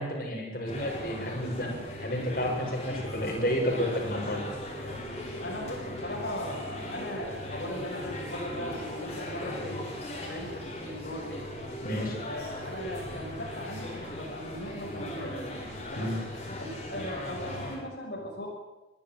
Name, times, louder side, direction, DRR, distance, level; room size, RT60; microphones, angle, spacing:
voice 1, 0.0-4.4 11.8-12.2 16.0-16.2, equal, 50° left, 0 dB, 7.1 m, -31 dB
sound 1, 0.6-17.8, left 1 dB, 35° left, 7.5 m, -38 dB
voice 2, 5.4-11.5 12.2-15.5 15.9-16.2 16.6-18.5, left 1 dB, 65° left, -3 dB, 6.2 m, -38 dB
25.5 x 14.5 x 9.4 m, 1.1 s
head